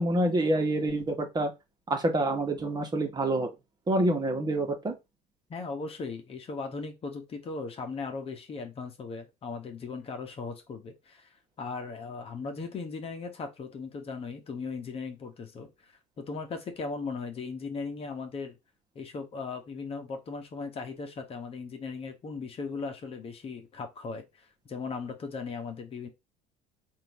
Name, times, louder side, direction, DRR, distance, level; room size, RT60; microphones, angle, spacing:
voice 1, 0.0-1.5 1.9-3.5 3.9-4.9, right 1 dB, 25° right, 1.4 m, -27 dB
voice 2, 5.5-18.6 18.9-26.1, left 4 dB, 40° left, 1.2 m, -38 dB
3.7 x 2.8 x 4.7 m
supercardioid pair, 100°, 16 cm